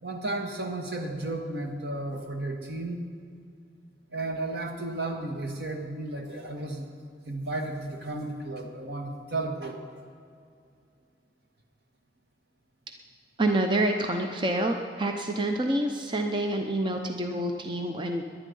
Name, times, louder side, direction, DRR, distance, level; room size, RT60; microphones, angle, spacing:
voice 1, 0.0-3.1 4.1-6.9 7.3-9.8, right 2 dB, 70° right, 3 dB, 1.8 m, -33 dB
voice 2, 13.4-18.2, right 1 dB, 25° right, 4 dB, 0.7 m, -27 dB
18.5 x 11.0 x 5.5 m, 2.4 s
head